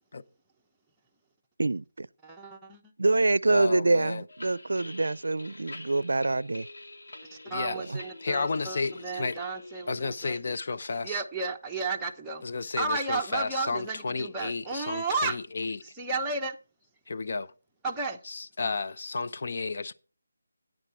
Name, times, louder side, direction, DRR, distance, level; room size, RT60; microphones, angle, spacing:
voice 1, 1.6-2.1 3.0-6.7 7.8-8.0, right 2 dB, 75° right, 0.4 m, -25 dB
voice 2, 2.2-2.9 4.9-5.0 7.2-10.4 11.0-12.4 12.8-15.4 15.8-16.6 17.8-18.3, right 3 dB, 5° right, 0.9 m, -33 dB
voice 3, 3.5-4.2 7.4-7.8 8.2-9.4 9.9-11.2 12.4-15.8 17.1-17.5 18.4-19.9, left 4 dB, 50° left, 0.6 m, -32 dB
sound 1, 4.3-10.4, left 2 dB, 70° left, 2.3 m, -47 dB
9.9 x 9.0 x 4.6 m
figure-of-eight pair, 165°, 0 cm